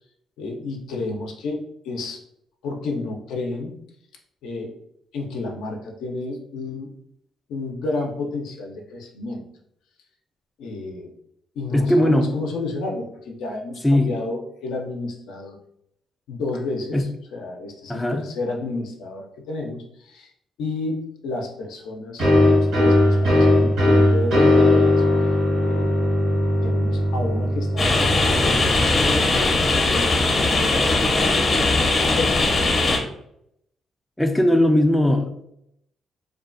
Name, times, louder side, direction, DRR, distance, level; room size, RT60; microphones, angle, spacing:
voice 1, 0.4-2.2 2.6-3.7 4.4-4.7 5.1-6.9 7.5-9.4 10.6-11.1 11.6-15.6 16.3-20.3 20.6-24.9 25.6-26.0 26.6-28.0 28.3-31.3 31.6-32.5, left 3 dB, 85° left, 1 dB, 0.5 m, -31 dB
voice 2, 11.7-12.3 13.8-14.1 16.9-17.0 17.9-18.2 34.2-35.4, left 1 dB, 10° left, 5 dB, 0.3 m, -19 dB
sound 1, 22.2-29.7, left 1 dB, 80° right, 1.2 m, -19 dB
sound 2, 27.8-33.0, left 2 dB, 45° left, 0.7 m, -20 dB
2.4 x 2.3 x 2.4 m, 0.75 s
cardioid pair, 90°, 0 cm